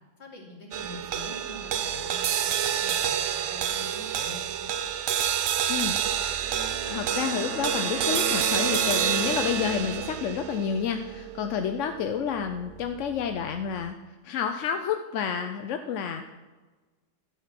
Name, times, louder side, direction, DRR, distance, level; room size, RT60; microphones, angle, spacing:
voice 1, 0.2-4.7, left 1 dB, 40° left, -2 dB, 2.8 m, -45 dB
sound 1, 0.7-13.2, right 9 dB, 65° right, 0.8 m, -29 dB
voice 2, 5.7-14.0 14.2-16.3, left 7 dB, 65° left, 6 dB, 0.8 m, -30 dB
Wind instrument woodwind instrument, 6.4-10.2, equal, 25° left, 1.7 m, -36 dB
12.5 x 6.5 x 5.8 m, 1.3 s
omnidirectional pair, 1.7 m